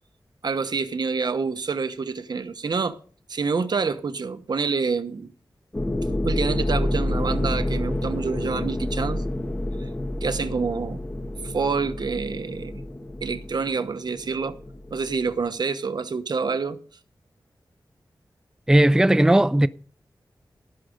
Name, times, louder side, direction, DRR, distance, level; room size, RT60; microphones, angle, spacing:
voice 1, 0.4-3.0 3.3-5.3 6.2-9.2 10.2-11.0 11.4-12.8 13.2-14.6 14.9-16.8, right 5 dB, 65° right, 0.9 m, -27 dB
sound 1, 5.7-15.5, left 1 dB, 20° left, 1.3 m, -29 dB
voice 2, 18.7-19.7, right 1 dB, 10° right, 0.4 m, -16 dB
17.0 x 6.3 x 5.1 m
wide cardioid pair, 95°, 8 cm